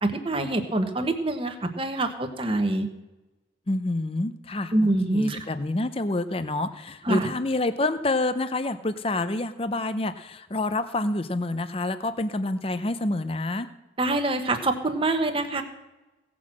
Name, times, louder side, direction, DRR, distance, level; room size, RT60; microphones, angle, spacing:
voice 1, 0.0-2.9 4.7-5.4 7.0-7.3 14.0-15.6, right 2 dB, 30° right, 6 dB, 1.2 m, -25 dB
voice 2, 3.7-13.7, left 2 dB, 30° left, 11 dB, 0.6 m, -28 dB
17.0 x 6.2 x 7.5 m, 1.1 s
head